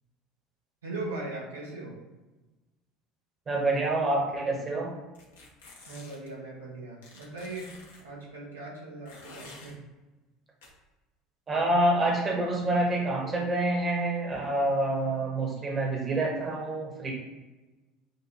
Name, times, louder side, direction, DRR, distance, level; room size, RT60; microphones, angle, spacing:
voice 1, 0.8-2.0 5.9-7.7 8.0-9.8, right 2 dB, 80° right, -4 dB, 1.3 m, -39 dB
voice 2, 3.5-5.0 11.5-17.1, right 2 dB, 30° right, -1 dB, 1.2 m, -27 dB
sound 1, 5.1-6.3 7.0-8.0 9.1-9.7 10.6-10.7, left 3 dB, 75° left, 1.0 m, -50 dB
6.9 x 2.5 x 3.0 m, 1.1 s
figure-of-eight pair, 65°, 0 cm